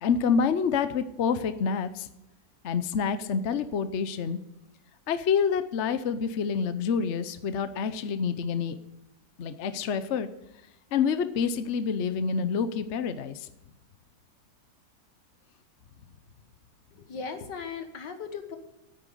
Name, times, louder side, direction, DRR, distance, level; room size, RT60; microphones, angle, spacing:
voice 1, 0.0-2.1 2.6-4.4 5.1-8.7 9.4-10.3 10.9-13.5, left 6 dB, 55° left, 11 dB, 0.9 m, -27 dB
voice 2, 16.9-18.6, left 5 dB, 70° left, 7 dB, 1.9 m, -38 dB
10.0 x 9.0 x 8.3 m, 0.93 s
omnidirectional pair, 2.0 m